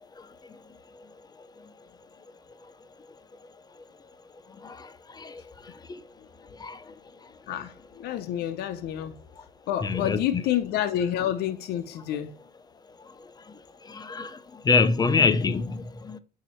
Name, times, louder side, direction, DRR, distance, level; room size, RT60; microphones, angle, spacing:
voice 1, 7.5-9.2 9.7-12.3, left 11 dB, 75° left, 0.6 m, -29 dB
voice 2, 9.8-10.4 13.9-14.4 14.6-16.2, left 4 dB, 25° left, 0.5 m, -25 dB
8.3 x 2.8 x 4.3 m
cardioid pair, 110°, 17 cm